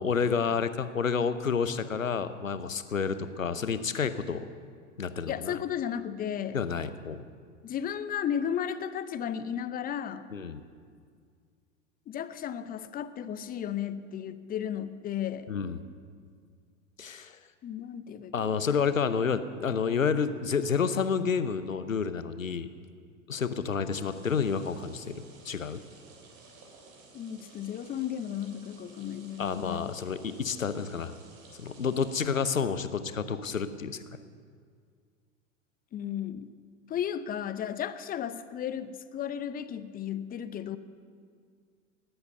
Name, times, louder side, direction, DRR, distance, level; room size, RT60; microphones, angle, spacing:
voice 1, 0.0-4.5 5.0-5.5 6.5-7.2 10.3-10.6 15.5-15.8 17.0-17.4 18.3-22.7 23.3-25.1 25.4-25.8 29.4-31.1 31.6-34.0, left 6 dB, 90° left, 12 dB, 0.8 m, -29 dB
voice 2, 5.3-6.6 7.6-10.3 12.1-15.5 17.6-18.7 27.1-29.9 30.2-30.4 35.9-36.5 36.9-40.8, left 9 dB, 25° left, 13 dB, 0.7 m, -34 dB
sound 1, 24.0-32.4, right 3 dB, 45° right, 3.2 m, -54 dB
18.5 x 8.1 x 6.7 m, 2.1 s
figure-of-eight pair, 85°, 39 cm